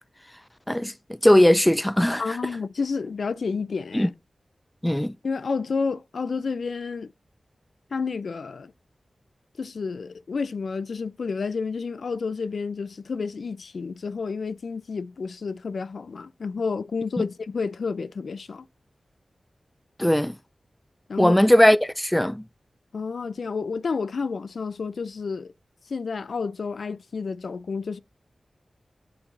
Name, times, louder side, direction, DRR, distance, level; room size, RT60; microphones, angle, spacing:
voice 1, 0.7-2.4 3.9-4.1 4.8-5.1 20.0-20.3 21.2-22.4, left 1 dB, 10° left, 0.4 m, -19 dB
voice 2, 2.2-4.1 5.2-7.1 7.9-8.7 9.6-18.7 21.1-21.3 22.9-25.5 25.9-28.0, left 5 dB, 80° left, 0.4 m, -30 dB
9.7 x 4.3 x 2.6 m
wide cardioid pair, 75°, 0 cm